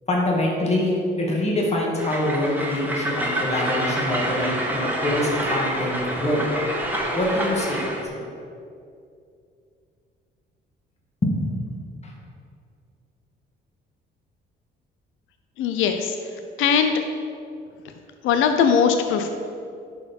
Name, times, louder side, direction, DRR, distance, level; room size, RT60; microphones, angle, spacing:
voice 1, 0.1-6.5 7.1-8.3 11.2-11.6 12.0-12.1, left 1 dB, 35° left, -2 dB, 2.0 m, -25 dB
Train, 2.0-8.0, right 1 dB, 10° right, 1.5 m, -27 dB
voice 2, 15.6-16.9 17.8-17.9 18.2-19.3, left 7 dB, 90° left, 6 dB, 0.6 m, -21 dB
10.5 x 4.7 x 5.3 m, 2.4 s
cardioid pair, 90°, 20 cm